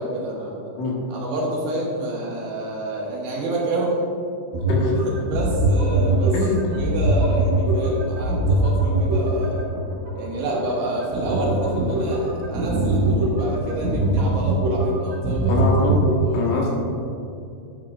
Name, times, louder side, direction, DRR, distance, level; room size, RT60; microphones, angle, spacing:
voice 1, 0.0-0.7 1.1-4.0 4.9-6.3 6.7-9.7 10.2-15.7 16.3-16.4, right 1 dB, 70° right, -4 dB, 3.1 m, -28 dB
sound 1, 4.5-16.1, right 1 dB, 50° right, 2.9 m, -22 dB
voice 2, 6.3-6.7 15.5-16.0 16.3-16.7, left 2 dB, 80° left, -3 dB, 4.0 m, -23 dB
11.5 x 9.1 x 2.5 m, 2.6 s
omnidirectional pair, 5.5 m